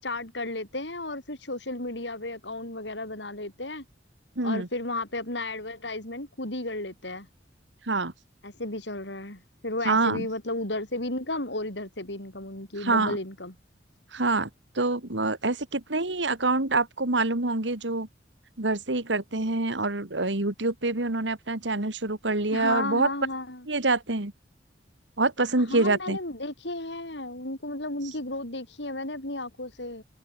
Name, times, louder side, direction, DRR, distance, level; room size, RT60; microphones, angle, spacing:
voice 1, 0.0-3.8 4.4-7.3 8.4-13.5 22.5-23.7 25.7-30.0, left 2 dB, 70° left, 7.3 m, -33 dB
voice 2, 4.4-4.7 7.9-8.1 9.8-10.3 12.8-13.2 14.1-14.5 14.8-18.1 18.6-23.1 23.7-24.3 25.2-26.2, right 2 dB, 80° right, 2.5 m, -26 dB
head